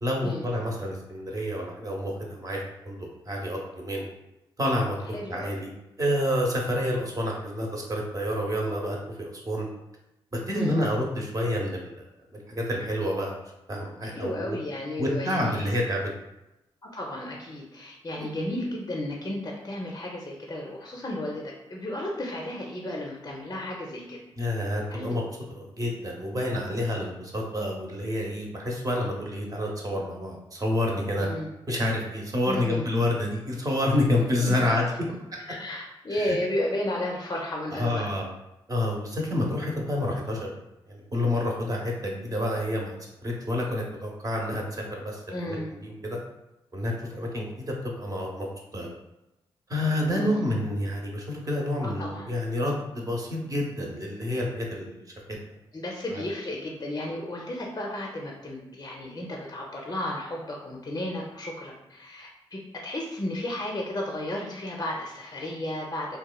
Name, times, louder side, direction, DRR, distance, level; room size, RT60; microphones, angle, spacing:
voice 1, 0.0-2.6 2.8-4.1 4.6-5.7 6.0-9.7 10.3-12.0 12.5-13.3 13.7-14.6 15.0-16.0 18.2-18.3 24.4-25.2 25.5-31.3 31.7-34.9 36.2-36.4 37.7-38.3 38.7-40.5 40.9-42.9 43.2-46.2 46.7-48.5 48.7-48.9 49.7-55.0 56.1-56.3, left 1 dB, 35° right, -1 dB, 0.8 m, -28 dB
voice 2, 5.1-5.5 10.5-10.9 14.1-15.7 16.9-24.2 24.9-25.1 31.2-31.5 32.5-32.9 34.4-34.8 35.5-38.2 45.3-45.7 50.1-50.5 51.8-52.3 55.7-66.2, left 1 dB, 35° left, -1 dB, 0.5 m, -33 dB
2.9 x 2.2 x 2.2 m, 0.92 s
supercardioid pair, 50°, 11 cm